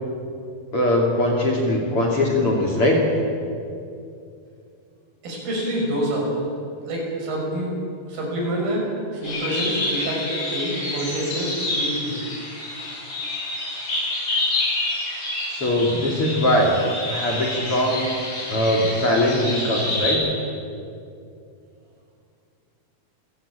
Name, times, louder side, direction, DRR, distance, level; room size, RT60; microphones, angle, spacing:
voice 1, 0.7-3.0 15.5-16.8 17.1-18.1 18.5-20.2, left 1 dB, 40° left, -1 dB, 3.5 m, -21 dB
voice 2, 5.2-6.3 6.9-7.7 8.1-8.9 9.1-12.1, right 1 dB, 80° right, -1 dB, 7.7 m, -27 dB
sound 1, 9.2-20.1, left 2 dB, 60° left, 9.2 m, -28 dB
28.0 x 15.5 x 8.8 m, 2.5 s
omnidirectional pair, 4.2 m